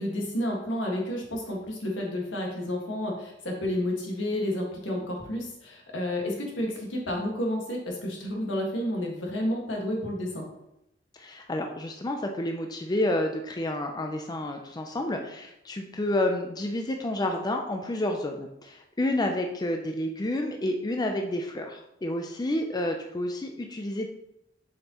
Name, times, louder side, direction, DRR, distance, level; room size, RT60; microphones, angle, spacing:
voice 1, 0.0-10.4, left 1 dB, 80° left, -1 dB, 1.7 m, -30 dB
voice 2, 11.1-24.1, left 1 dB, 20° left, 3 dB, 0.5 m, -30 dB
7.4 x 5.4 x 3.0 m, 0.86 s
head